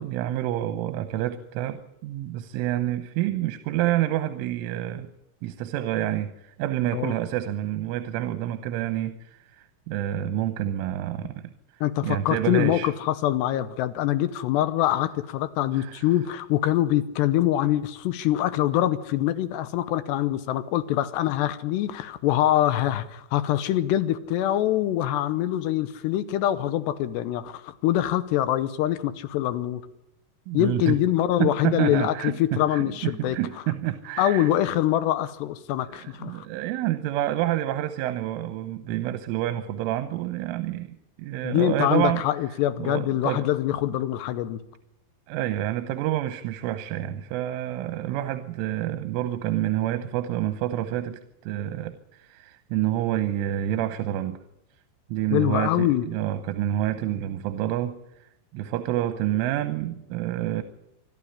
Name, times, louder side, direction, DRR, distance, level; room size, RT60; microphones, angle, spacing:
voice 1, 0.0-5.1 5.4-11.5 12.0-12.9 15.7-16.0 30.5-31.0 31.4-34.5 35.9-42.2 42.8-43.5 45.3-54.4 55.1-60.6, right 13 dB, 85° right, 11 dB, 3.5 m, -28 dB
voice 2, 11.8-29.8 30.5-33.4 34.2-36.5 41.4-44.6 55.3-56.1, left 13 dB, 75° left, 14 dB, 2.7 m, -24 dB
25.5 x 12.0 x 10.0 m, 0.86 s
omnidirectional pair, 5.6 m